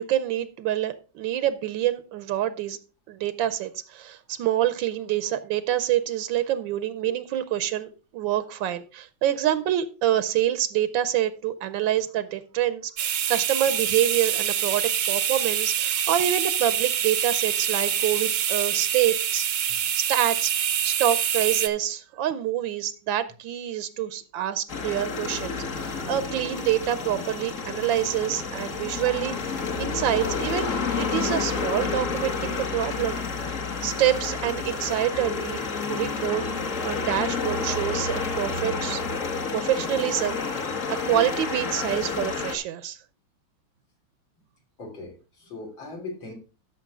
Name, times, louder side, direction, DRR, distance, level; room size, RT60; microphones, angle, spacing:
voice 1, 0.0-2.8 3.1-19.5 20.0-20.5 20.8-29.3 29.8-33.4 33.8-35.6 35.9-36.4 36.8-39.0 39.5-43.0, right 11 dB, 85° right, 13 dB, 1.4 m, -26 dB
sound 1, 13.0-21.7, right 9 dB, 65° right, 0.8 m, -26 dB
sound 2, 24.7-42.6, left 4 dB, 45° left, 1.4 m, -30 dB
voice 2, 44.8-46.3, left 3 dB, 85° left, 0 dB, 3.9 m, -39 dB
13.0 x 6.1 x 3.6 m, 0.36 s
omnidirectional pair, 2.1 m